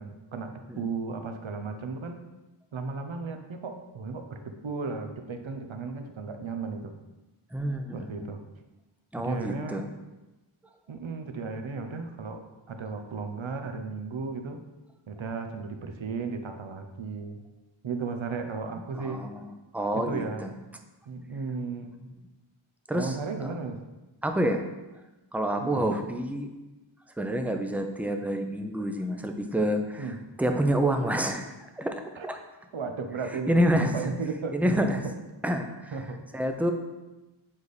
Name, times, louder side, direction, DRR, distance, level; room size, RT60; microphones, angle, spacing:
voice 1, 0.0-2.2 2.7-6.9 7.9-8.4 9.2-9.8 10.9-12.4 12.7-14.6 15.1-17.4 17.8-19.2 19.9-20.7 21.1-21.9 22.9-23.8 25.6-25.9 30.0-30.2 32.2-32.3 32.7-34.6 35.9-36.2, right 4 dB, 70° right, 6 dB, 0.7 m, -35 dB
voice 2, 7.5-8.2 9.1-9.9 18.9-19.5 19.7-20.5 22.9-23.5 24.2-24.6 25.3-26.5 27.2-30.1 30.4-32.0 32.2-32.4 33.5-33.9 34.5-35.0 35.4-35.9 36.3-36.7, right 1 dB, 5° right, 5 dB, 0.5 m, -28 dB
7.2 x 4.0 x 3.3 m, 1.1 s
wide cardioid pair, 50°, 49 cm